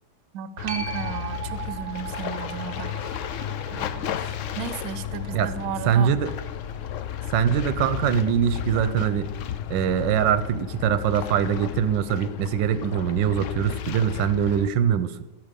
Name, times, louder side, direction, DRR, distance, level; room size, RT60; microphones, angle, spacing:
voice 1, 0.3-3.2 3.7-4.2 4.5-6.1, right 8 dB, 70° right, 14 dB, 0.9 m, -34 dB
sound 1, 0.6-14.7, left 9 dB, 85° left, 0.6 m, -33 dB
sound 2, 0.7-7.8 13.4-13.5, right 7 dB, 40° right, 0.9 m, -40 dB
voice 2, 5.9-6.3 7.3-9.3 9.7-15.1, right 9 dB, 90° right, 13 dB, 1.4 m, -23 dB
14.0 x 6.3 x 5.2 m, 0.99 s
omnidirectional pair, 2.0 m